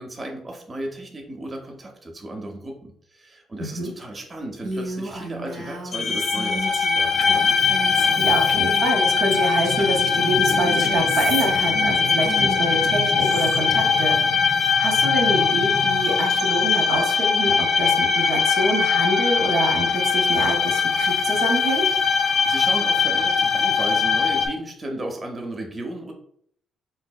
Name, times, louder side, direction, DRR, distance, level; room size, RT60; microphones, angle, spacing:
voice 1, 0.0-7.5 22.1-26.1, right 1 dB, 30° right, 1 dB, 0.6 m, -35 dB
voice 2, 3.6-3.9 8.2-21.8, right 1 dB, 70° right, 2 dB, 0.8 m, -26 dB
Female speech woman speaking, 4.6-10.0 10.5-13.6, right 1 dB, 90° right, 1.1 m, -34 dB
sound 1, 5.9-24.5, left 5 dB, 55° left, 0.4 m, -21 dB
3.8 x 2.7 x 2.2 m, 0.64 s
cardioid pair, 90°, 0 cm